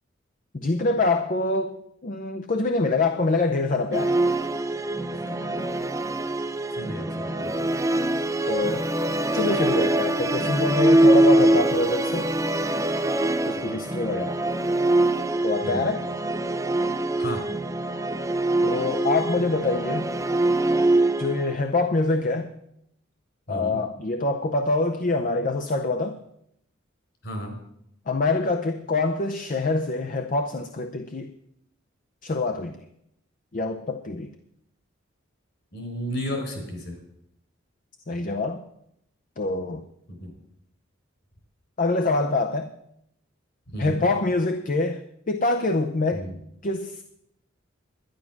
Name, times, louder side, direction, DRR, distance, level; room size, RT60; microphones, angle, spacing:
voice 1, 0.5-4.1 8.5-8.9 9.3-12.3 13.4-14.4 15.4-16.1 18.6-20.1 21.2-22.5 23.5-26.2 28.1-31.3 32.2-32.8 33.5-34.3 38.1-38.6 39.4-39.9 41.8-42.7 43.8-46.3 46.6-47.0, left 2 dB, 40° left, 6 dB, 0.6 m, -25 dB
Musical instrument, 3.9-21.5, right 1 dB, 15° right, 0.5 m, -23 dB
voice 2, 5.1-5.5 6.7-7.5 13.5-13.8 15.6-15.9 17.2-17.4 23.5-23.8 27.2-27.6 35.7-37.0 40.1-40.3 43.7-44.0 46.1-46.3, equal, 60° left, 3 dB, 4.4 m, -34 dB
11.5 x 10.5 x 6.0 m, 0.77 s
head